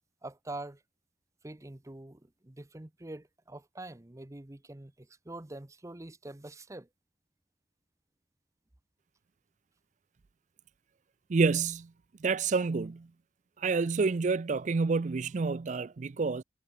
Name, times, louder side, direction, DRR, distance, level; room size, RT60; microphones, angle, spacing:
voice 1, 0.2-0.8 1.4-6.9, right 2 dB, 20° right, 0.7 m, -45 dB
voice 2, 11.3-11.9 12.2-13.1 13.6-16.4, right 4 dB, 45° right, 0.4 m, -28 dB
head